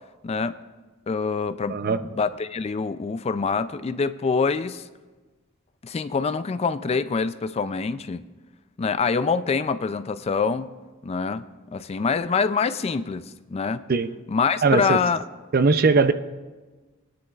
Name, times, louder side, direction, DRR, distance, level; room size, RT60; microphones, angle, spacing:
voice 1, 0.2-0.6 1.1-4.8 5.8-8.2 8.8-10.7 11.0-11.4 11.7-13.8 14.3-15.2, left 5 dB, 30° left, 13 dB, 0.3 m, -25 dB
voice 2, 14.6-15.0 15.5-16.1, right 4 dB, 45° right, 11 dB, 0.5 m, -19 dB
22.0 x 9.8 x 2.4 m, 1.3 s
head